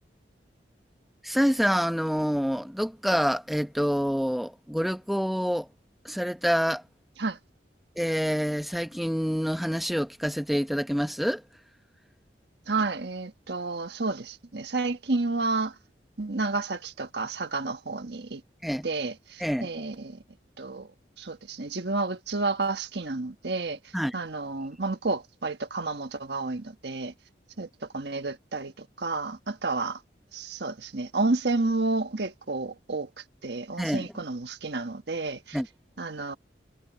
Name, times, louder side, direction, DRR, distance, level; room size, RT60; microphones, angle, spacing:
voice 1, 1.2-5.7 6.0-6.8 8.0-11.4 18.6-18.9 19.4-19.8 23.9-24.2 33.8-34.1 35.5-35.7, equal, ahead, 0.9 m, -27 dB
voice 2, 12.7-15.7 16.2-18.4 18.8-20.2 20.6-20.9 21.2-23.8 24.1-27.1 27.6-27.7 27.9-30.0 30.3-33.1 33.4-35.6 36.0-36.4, right 3 dB, 70° right, 1.4 m, -30 dB
head